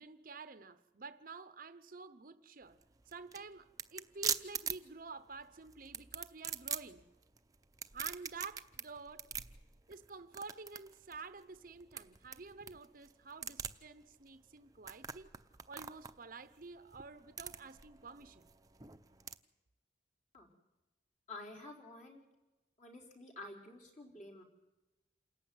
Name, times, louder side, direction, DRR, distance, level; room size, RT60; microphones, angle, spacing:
voice 1, 0.0-2.8 3.1-7.1 7.9-9.3 9.9-15.3 15.7-18.5, right 4 dB, 50° right, 0.8 m, -50 dB
sound 1, 2.6-19.4, right 7 dB, 20° right, 0.8 m, -44 dB
voice 2, 21.3-22.2 22.8-24.4, left 2 dB, 45° left, 4.4 m, -50 dB
28.0 x 14.5 x 9.6 m
head